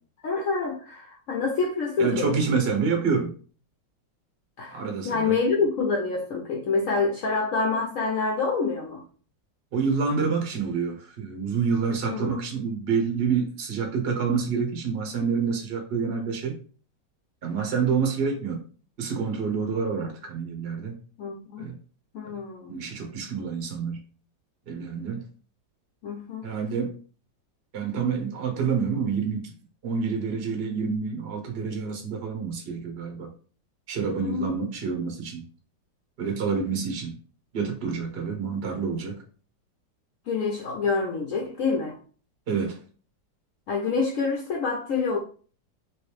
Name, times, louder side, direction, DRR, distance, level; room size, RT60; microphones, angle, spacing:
voice 1, 0.2-2.3 4.6-9.0 12.0-12.3 21.2-21.7 22.1-22.8 26.0-26.5 34.2-34.6 40.3-42.0 43.7-45.2, left 4 dB, 75° left, 0.7 m, -27 dB
voice 2, 2.0-3.3 4.7-5.4 9.7-16.6 17.4-18.6 19.0-21.0 21.6-21.7 22.2-22.4 22.7-24.0 24.7-25.2 26.4-26.9 27.7-29.5 29.8-33.3 33.9-35.4 36.2-37.1 37.5-39.2 42.5-42.8, right 5 dB, 55° right, 0.7 m, -27 dB
3.1 x 2.9 x 3.2 m
omnidirectional pair, 2.0 m